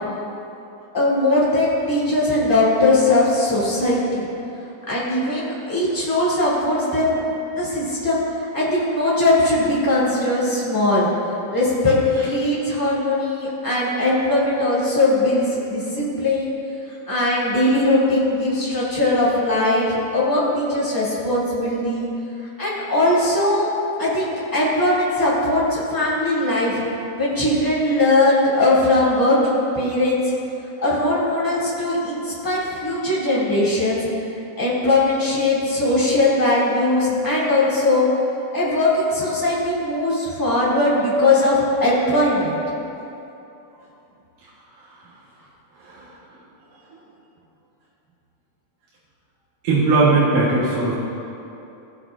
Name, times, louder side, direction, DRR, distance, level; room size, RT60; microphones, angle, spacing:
voice 1, 0.9-4.3 4.9-11.1 11.5-16.5 17.1-22.1 22.6-23.7 24.0-26.8 27.2-30.3 30.8-34.0 34.6-38.1 38.5-42.6, left 2 dB, 10° left, -9 dB, 1.4 m, -20 dB
voice 2, 49.6-50.9, right 3 dB, 70° right, -8 dB, 2.7 m, -18 dB
16.0 x 7.2 x 2.4 m, 2.9 s
omnidirectional pair, 3.9 m